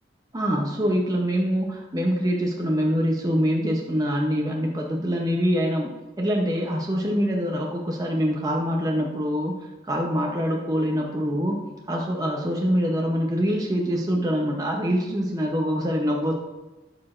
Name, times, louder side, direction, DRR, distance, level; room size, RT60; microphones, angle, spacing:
voice 1, 0.3-16.3, equal, 20° right, -1 dB, 0.6 m, -25 dB
11.5 x 4.8 x 2.5 m, 1.1 s
head